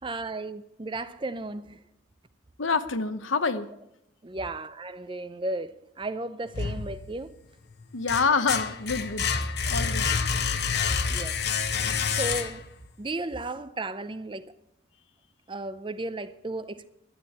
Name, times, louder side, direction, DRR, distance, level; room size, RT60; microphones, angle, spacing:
voice 1, 0.0-1.8 4.2-7.3 11.1-11.4 12.1-12.6 13.0-14.5 15.5-16.9, right 2 dB, 25° right, 0.6 m, -34 dB
voice 2, 2.6-3.7 7.9-9.3 9.7-10.1, left 4 dB, 80° left, 1.0 m, -26 dB
sound 1, 6.5-7.4 7.8-12.8, left 6 dB, 55° left, 1.0 m, -28 dB
12.0 x 9.8 x 8.6 m
head